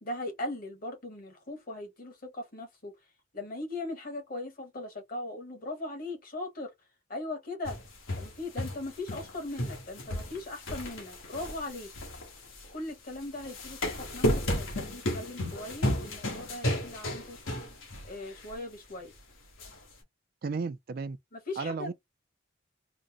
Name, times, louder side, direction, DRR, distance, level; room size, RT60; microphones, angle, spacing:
voice 1, 0.0-2.9 3.3-6.7 7.1-7.8 8.2-11.9 12.7-17.4 18.0-19.1 21.3-21.9, left 2 dB, 45° left, 1.3 m, -39 dB
sound 1, 7.6-9.3 9.6-12.7 13.4-18.1 18.4-18.5 19.6-19.7, left 1 dB, 85° left, 1.5 m, -33 dB
voice 2, 20.4-21.2 21.6-21.9, right 4 dB, 50° right, 0.4 m, -33 dB
3.9 x 2.1 x 3.6 m
head